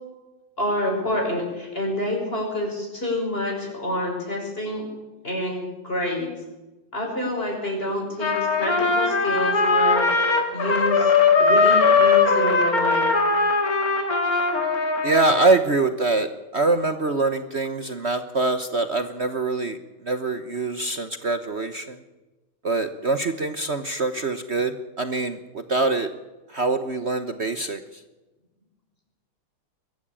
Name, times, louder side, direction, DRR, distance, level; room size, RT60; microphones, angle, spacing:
voice 1, 0.6-4.9 5.2-6.3 6.9-10.1 10.5-11.1 11.4-13.0, left 1 dB, 25° left, 0 dB, 6.1 m, -27 dB
Trumpet, 8.2-15.5, left 4 dB, 40° left, 2.8 m, -20 dB
voice 2, 15.0-16.3 16.5-19.8 20.1-22.0 22.6-25.4 25.7-26.1 26.5-27.8, right 3 dB, 50° right, 10 dB, 0.8 m, -24 dB
22.0 x 14.0 x 8.9 m, 1.1 s
omnidirectional pair, 2.4 m